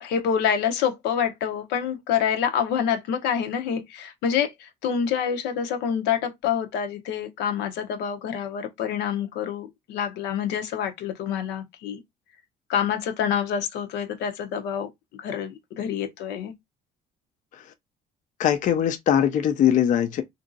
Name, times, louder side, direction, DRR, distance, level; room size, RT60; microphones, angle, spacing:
voice 1, 0.0-12.0 12.7-16.5, left 8 dB, 85° left, 0.7 m, -27 dB
voice 2, 18.4-20.2, left 10 dB, 50° left, 0.4 m, -21 dB
2.9 x 2.6 x 2.5 m
cardioid pair, 110°, 17 cm